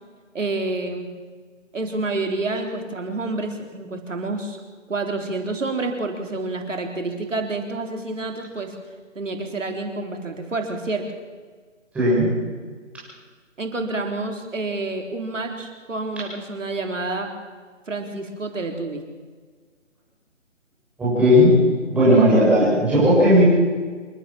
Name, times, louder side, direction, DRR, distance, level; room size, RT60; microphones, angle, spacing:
voice 1, 0.3-1.1 1.7-4.6 4.9-8.7 9.2-11.0 13.6-17.3 17.9-19.0, right 2 dB, 75° right, 3 dB, 3.8 m, -28 dB
voice 2, 11.9-12.3 21.0-21.6 21.9-23.4, equal, 5° right, -10 dB, 7.1 m, -15 dB
27.5 x 13.0 x 7.5 m, 1.5 s
figure-of-eight pair, 165°, 38 cm